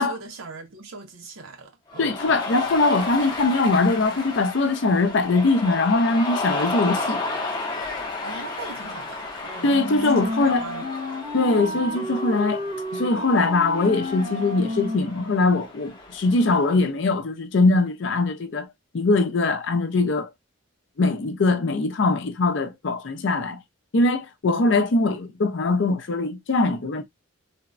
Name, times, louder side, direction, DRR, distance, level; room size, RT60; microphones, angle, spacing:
voice 1, 0.0-2.2 8.2-10.9 11.6-11.9, right 4 dB, 75° right, 0.6 m, -41 dB
Cheering, 1.9-16.7, left 3 dB, 20° left, 0.6 m, -33 dB
voice 2, 2.0-7.2 9.6-10.7 11.3-12.6 12.9-18.7 18.9-20.3 21.0-23.6 23.9-27.0, left 3 dB, 60° left, 0.5 m, -22 dB
Wind instrument woodwind instrument, 9.7-15.6, left 1 dB, 25° right, 0.7 m, -31 dB
3.4 x 2.0 x 2.4 m
head